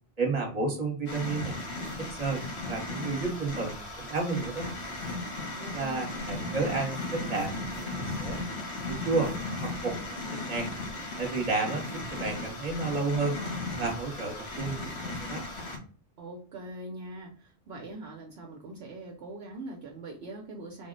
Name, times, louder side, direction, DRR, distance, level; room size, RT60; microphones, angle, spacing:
voice 1, 0.2-1.6 2.0-2.4 2.7-4.7 5.7-8.4 8.9-9.3 9.6-10.0 10.3-10.7 11.2-13.4 13.8-15.4, right 3 dB, 35° right, 2 dB, 1.1 m, -31 dB
sound 1, 1.1-15.8, left 2 dB, 70° left, 1.1 m, -36 dB
voice 2, 5.5-6.6 16.2-20.9, right 1 dB, 65° right, 1 dB, 0.8 m, -42 dB
3.7 x 2.1 x 3.8 m, 0.42 s
omnidirectional pair, 1.2 m